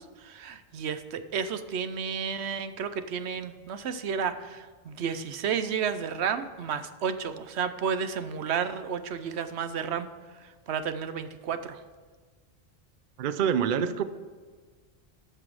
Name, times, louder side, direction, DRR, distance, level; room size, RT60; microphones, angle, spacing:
voice 1, 0.0-10.1 10.4-11.8, right 7 dB, 80° right, 11 dB, 1.0 m, -32 dB
voice 2, 13.2-14.0, right 8 dB, 55° right, 12 dB, 0.7 m, -26 dB
13.5 x 6.0 x 4.9 m, 1.5 s
omnidirectional pair, 1.1 m